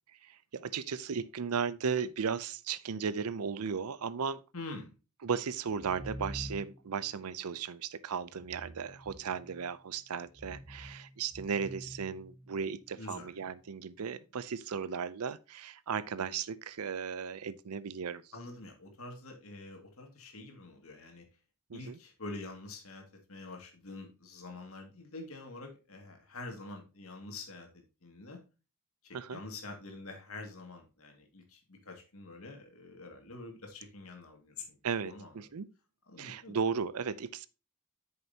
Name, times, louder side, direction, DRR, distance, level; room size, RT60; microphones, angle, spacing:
voice 1, 0.2-4.4 5.2-18.2 21.7-22.0 29.1-29.4 34.8-35.7 36.2-37.5, right 6 dB, 80° right, 0.5 m, -36 dB
voice 2, 4.5-4.9 13.0-13.4 18.3-21.3 21.7-27.7 28.0-28.4 29.0-34.7 35.0-35.3 36.1-36.5, left 2 dB, 70° left, 2.2 m, -46 dB
sound 1, 5.8-7.0 8.3-9.7 10.3-12.8, equal, 20° right, 0.8 m, -47 dB
8.8 x 6.6 x 2.8 m
head